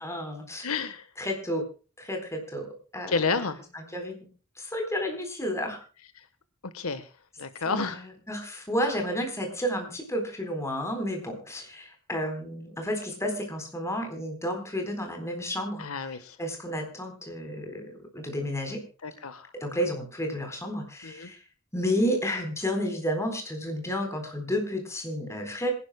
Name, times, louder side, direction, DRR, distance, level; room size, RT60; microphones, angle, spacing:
voice 1, 0.0-0.7 1.2-1.6 2.0-2.7 2.9-3.2 3.7-4.2 4.6-5.8 7.7-7.8 8.3-15.8 16.4-18.8 19.5-21.4 21.7-25.7, equal, 15° left, 4 dB, 3.9 m, -31 dB
voice 2, 0.6-1.1 3.1-3.6 6.2-6.3 6.6-7.1 7.4-8.0 15.8-16.4 19.0-19.5 21.0-21.3, left 4 dB, 70° left, 11 dB, 1.2 m, -30 dB
26.0 x 11.5 x 2.2 m, 0.36 s
head